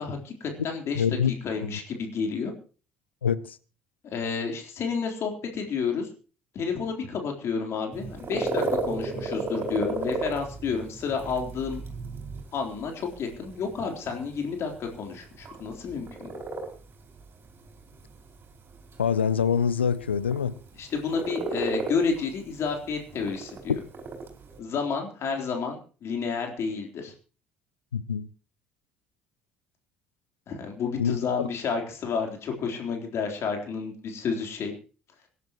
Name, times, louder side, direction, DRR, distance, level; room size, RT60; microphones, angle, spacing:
voice 1, 0.0-1.0 1.4-2.5 4.1-6.1 6.5-11.8 12.5-16.3 20.8-23.8 24.6-27.1 30.5-34.7, left 5 dB, 50° left, 3.8 m, -30 dB
voice 2, 0.9-1.3 1.7-1.8 3.2-3.6 19.0-20.6 23.7-23.8 27.9-28.3 31.0-31.5, left 7 dB, 85° left, 0.6 m, -25 dB
sound 1, 7.9-24.6, right 3 dB, 40° right, 5.2 m, -34 dB
25.5 x 11.0 x 3.1 m
figure-of-eight pair, 55°, 6 cm